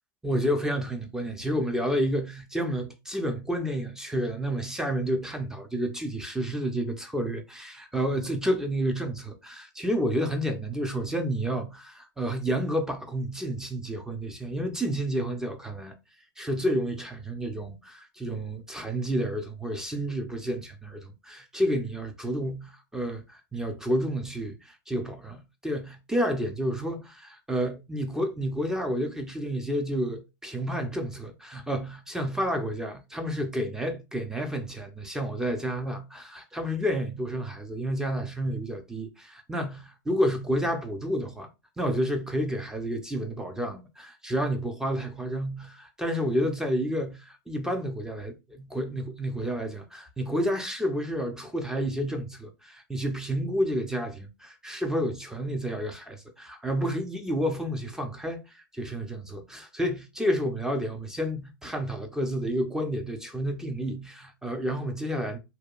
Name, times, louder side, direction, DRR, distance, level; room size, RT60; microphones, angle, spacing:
voice 1, 0.2-15.9 16.4-41.5 41.8-65.4, equal, 5° right, 0.4 m, -30 dB
2.8 x 2.2 x 2.3 m
hypercardioid pair, 115°, 11 cm